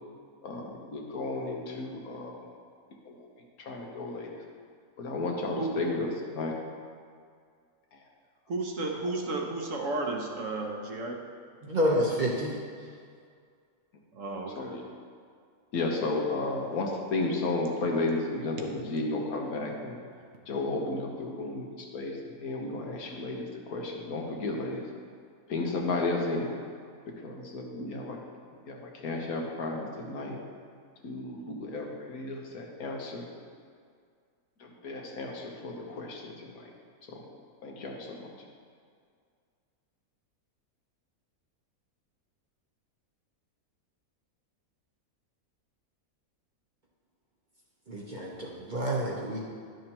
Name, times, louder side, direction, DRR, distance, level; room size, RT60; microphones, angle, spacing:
voice 1, 0.4-2.5 3.0-3.3 3.6-4.4 5.0-6.5 7.9-8.1 14.6-14.9 15.7-20.0 20.5-24.9 25.5-26.5 27.1-28.2 28.5-30.4 31.0-33.3 34.6-36.7 37.1-37.2 37.6-38.3, left 2 dB, 75° left, 0 dB, 1.5 m, -33 dB
voice 2, 8.5-11.2 14.1-14.8, right 2 dB, 60° right, 1 dB, 1.1 m, -33 dB
voice 3, 11.6-12.5 47.9-49.4, equal, 40° right, -3 dB, 0.8 m, -28 dB
11.0 x 6.5 x 2.9 m, 2.2 s
omnidirectional pair, 1.6 m